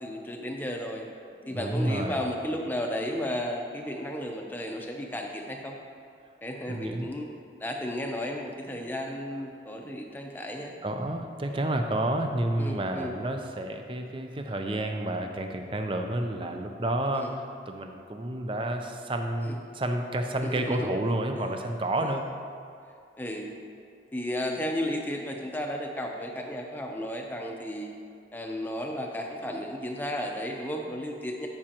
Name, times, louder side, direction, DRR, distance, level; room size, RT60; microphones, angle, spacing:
voice 1, 0.0-1.1 1.5-5.8 6.4-7.3 7.6-10.8 12.6-13.1 17.1-17.3 19.4-19.6 20.4-20.9 21.4-21.6 22.0-22.1 23.2-23.6 24.1-27.9 28.3-31.5, equal, 10° left, 1 dB, 0.7 m, -33 dB
voice 2, 1.4-2.2 6.7-7.1 10.8-17.3 17.7-22.2, right 1 dB, 30° right, 4 dB, 0.6 m, -30 dB
13.5 x 6.1 x 2.9 m, 2.5 s
head